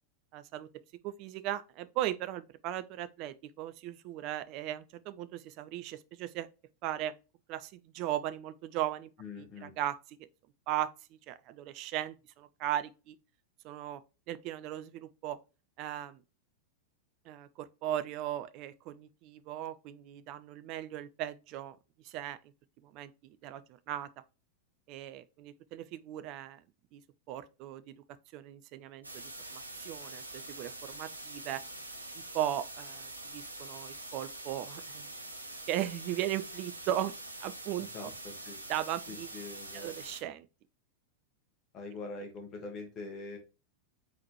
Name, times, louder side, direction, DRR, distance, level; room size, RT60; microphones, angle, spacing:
voice 1, 0.3-0.7 1.0-6.5 6.8-7.1 7.5-9.1 9.4-10.2 10.7-13.2 13.6-14.0 14.3-15.4 15.8-16.2 17.2-22.4 22.8-24.1 24.9-26.6 26.9-27.0 27.3-27.9 28.3-29.2 29.5-31.6 32.1-35.1 35.7-37.1 37.4-38.1 38.7-39.3 39.7-40.5, right 12 dB, 40° right, 0.3 m, -37 dB
voice 2, 9.2-9.7 37.9-38.6 39.1-39.9 41.7-43.4, left 3 dB, 30° left, 1.6 m, -43 dB
sound 1, 29.0-40.2, right 2 dB, 85° right, 0.7 m, -45 dB
4.1 x 4.1 x 3.0 m
figure-of-eight pair, 90°, 0 cm